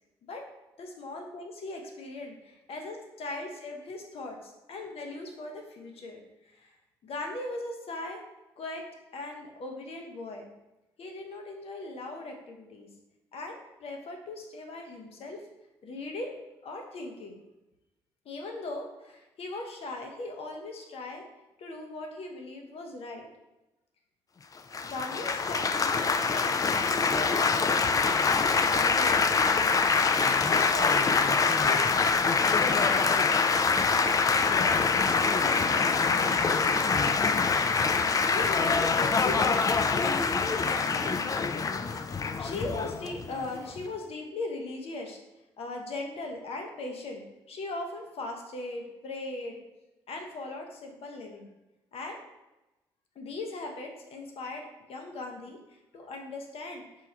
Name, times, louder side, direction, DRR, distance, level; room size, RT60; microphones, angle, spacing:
voice 1, 0.8-2.3 2.7-4.4 4.7-6.2 6.5-6.7 7.0-8.2 8.6-8.9 9.1-10.5 11.0-12.9 13.3-15.4 15.8-16.3 16.6-17.4 18.2-21.2 21.6-23.3 24.8-26.0 26.3-27.9 28.3-29.2 30.5-32.0 32.3-33.1 33.9-37.7 38.0-41.5 41.8-42.1 42.4-45.2 45.6-49.6 50.1-51.5 51.9-52.2 53.2-55.6 55.9-56.9, left 2 dB, 60° left, 3 dB, 0.8 m, -39 dB
Laughter / Applause / Chatter, 24.7-43.9, left 5 dB, 30° left, 0.3 m, -25 dB
4.6 x 2.3 x 4.3 m, 1.0 s
hypercardioid pair, 45°, 11 cm